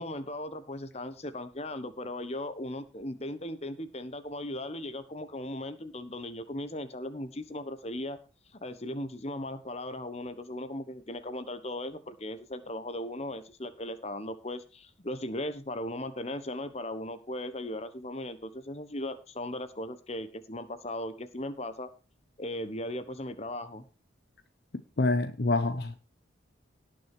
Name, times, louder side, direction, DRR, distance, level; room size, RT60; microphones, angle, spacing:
voice 1, 0.0-8.2 8.5-21.9 22.4-23.8, left 1 dB, 35° left, 11 dB, 1.2 m, -37 dB
voice 2, 25.0-26.0, left 2 dB, 55° left, 11 dB, 0.8 m, -27 dB
18.0 x 6.5 x 4.5 m, 0.32 s
head